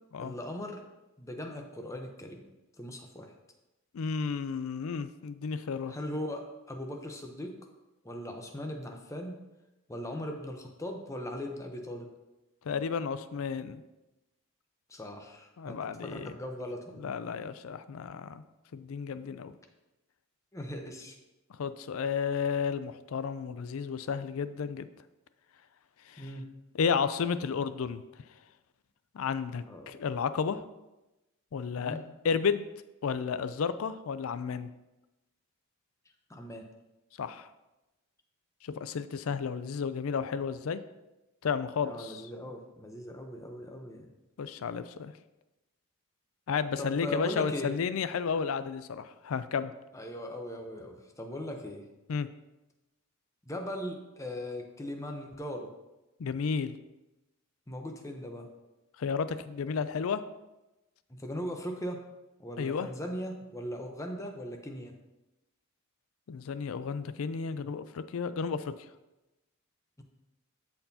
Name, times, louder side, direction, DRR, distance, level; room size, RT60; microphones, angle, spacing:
voice 1, 0.2-0.8 1.2-2.4 2.8-3.3 5.9-7.5 8.0-9.4 9.9-12.1 14.9-17.1 20.5-21.2 26.2-26.4 29.6-30.0 31.8-32.0 36.3-36.7 41.8-44.1 46.8-47.7 49.9-51.8 53.5-55.7 57.7-58.5 61.1-62.0 62.4-64.9 70.0-70.1, left 1 dB, 15° left, 3 dB, 0.8 m, -39 dB
voice 2, 3.9-5.9 12.7-13.8 15.6-16.3 17.0-18.4 18.7-19.5 21.6-24.9 26.1-26.3 26.7-28.0 29.1-30.6 31.5-32.0 32.2-32.7 33.0-34.7 37.2-37.5 38.6-40.8 41.4-42.2 44.4-45.1 46.5-49.7 52.1-52.3 56.2-56.8 59.0-60.2 62.6-62.9 66.3-68.7, left 6 dB, 85° left, 13 dB, 0.4 m, -32 dB
13.5 x 4.4 x 2.8 m, 1.0 s
head